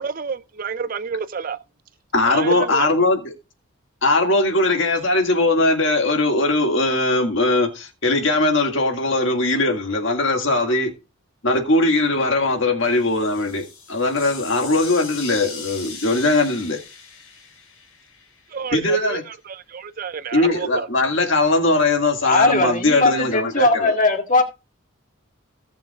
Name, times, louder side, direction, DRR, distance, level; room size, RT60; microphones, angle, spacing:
voice 1, 0.0-1.6 2.2-2.9 18.5-20.9, right 5 dB, 40° right, 0.4 m, -29 dB
voice 2, 2.1-3.3 4.0-10.9 11.4-16.8 18.7-19.2 20.3-23.9, left 2 dB, 60° left, 2.0 m, -20 dB
sound 1, 12.8-18.7, left 5 dB, 80° left, 5.2 m, -39 dB
voice 3, 22.2-24.4, left 2 dB, 35° left, 1.8 m, -19 dB
17.5 x 7.3 x 2.4 m
head